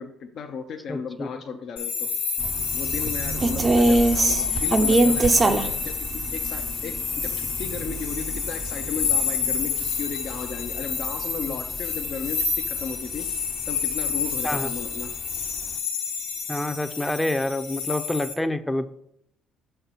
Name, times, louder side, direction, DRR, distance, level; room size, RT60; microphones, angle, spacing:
voice 1, 0.0-2.1 2.7-13.3 13.7-15.1, left 6 dB, 60° left, 3 dB, 0.6 m, -35 dB
voice 2, 0.9-1.4 11.5-11.6 14.4-14.7 16.5-18.9, left 1 dB, 10° left, 10 dB, 0.6 m, -27 dB
sound 1, 1.8-18.3, left 6 dB, 75° left, 1.1 m, -29 dB
sound 2, 2.4-12.8 13.1-13.3 13.8-14.5 14.9-15.0 15.3-15.7, right 2 dB, 35° right, 0.6 m, -25 dB
6.6 x 4.4 x 5.5 m, 0.74 s
hypercardioid pair, 60°, 0 cm